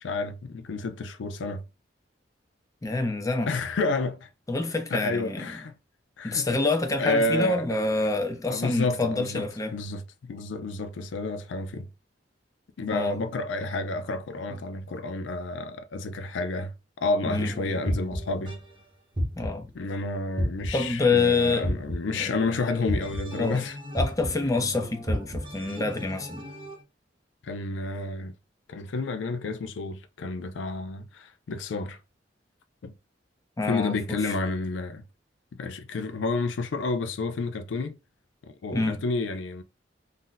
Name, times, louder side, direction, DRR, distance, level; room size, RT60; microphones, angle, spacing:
voice 1, 0.0-1.6 3.5-4.3 4.9-5.7 6.2-6.5 7.0-7.7 8.5-9.4 9.7-11.8 12.8-16.7 17.0-18.5 19.7-23.8 27.4-28.3 28.7-32.0 32.8-32.9 33.7-35.0 35.5-38.0 38.5-39.6, left 3 dB, 90° left, 0.4 m, -30 dB
voice 2, 2.8-3.5 4.5-5.5 6.2-9.8 12.9-13.2 17.2-17.5 19.3-19.7 20.7-21.7 22.2-22.3 23.4-23.6 23.9-26.4 33.6-34.3 38.7-39.0, left 3 dB, 20° left, 0.5 m, -27 dB
sound 1, 17.4-18.8 19.1-19.8 20.4-21.0 21.6-26.8, equal, 25° right, 0.8 m, -33 dB
2.6 x 2.1 x 3.8 m
head